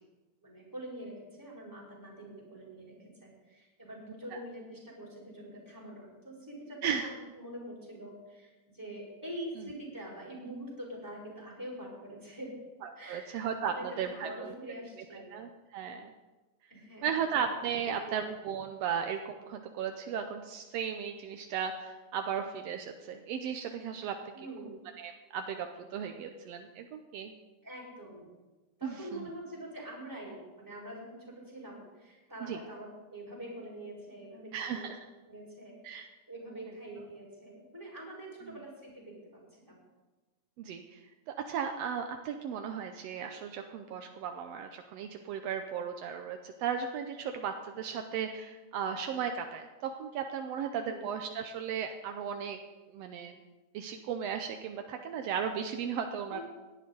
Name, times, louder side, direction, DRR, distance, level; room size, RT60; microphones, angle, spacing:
voice 1, 0.4-12.6 13.0-15.3 16.7-17.2 17.8-18.3 24.3-24.8 27.6-28.3 28.8-34.8 35.3-39.1 39.5-39.8 50.8-51.1 56.3-56.4, right 1 dB, 5° right, -4 dB, 4.4 m, -45 dB
voice 2, 12.8-14.5 15.1-16.1 17.0-24.3 25.0-27.3 28.8-29.3 32.4-32.6 34.5-35.0 35.8-36.1 40.6-52.6 52.9-53.4 53.7-56.4, right 7 dB, 80° right, 5 dB, 1.5 m, -36 dB
17.5 x 11.0 x 3.9 m, 1.2 s
omnidirectional pair, 3.7 m